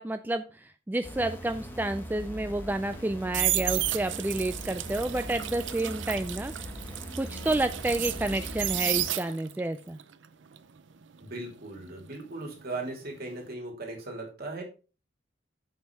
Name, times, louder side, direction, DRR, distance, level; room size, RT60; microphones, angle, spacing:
voice 1, 0.0-6.5 7.2-10.0, right 2 dB, 10° right, 9 dB, 0.3 m, -30 dB
sound 1, 1.0-9.1, equal, 10° left, 1.3 m, -40 dB
sound 2, 2.9-9.7 10.0-12.9 13.2-13.5, right 14 dB, 75° right, 0.6 m, -33 dB
voice 2, 11.2-14.6, right 2 dB, 55° right, 1 dB, 2.8 m, -38 dB
7.3 x 5.4 x 4.5 m, 0.34 s
head